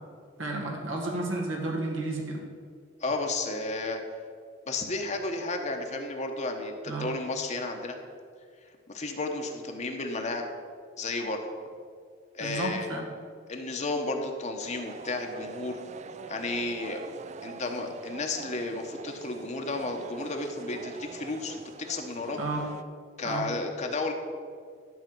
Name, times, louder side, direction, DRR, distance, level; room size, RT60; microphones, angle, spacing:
voice 1, 0.4-2.4 6.9-7.1 12.4-13.1 22.4-22.7 23.2-23.5, right 2 dB, 80° right, -1 dB, 1.8 m, -32 dB
voice 2, 3.0-4.0 4.7-8.0 8.9-10.4 11.0-11.4 12.3-12.9 13.5-15.8 16.3-17.0 17.4-22.4 23.2-24.1, left 2 dB, 35° left, 3 dB, 1.0 m, -32 dB
sound 1, 14.6-22.8, right 4 dB, 35° right, 0.4 m, -45 dB
12.0 x 4.9 x 7.7 m, 2.1 s
head